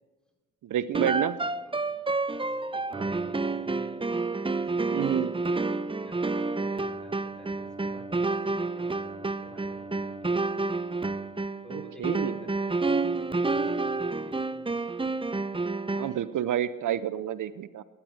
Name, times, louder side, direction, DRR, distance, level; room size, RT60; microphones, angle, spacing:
voice 1, 0.6-1.4 2.9-3.1 4.9-5.3 11.7-12.4 15.9-17.8, right 11 dB, 70° right, 16 dB, 0.6 m, -29 dB
sound 1, 0.9-16.3, right 3 dB, 15° right, 0.7 m, -29 dB
voice 2, 1.6-2.0 2.5-4.2 4.5-10.3 11.6-12.6 13.1-14.7, left 1 dB, ahead, 1 dB, 4.7 m, -51 dB
15.5 x 10.0 x 6.6 m, 1.2 s
supercardioid pair, 45°, 32 cm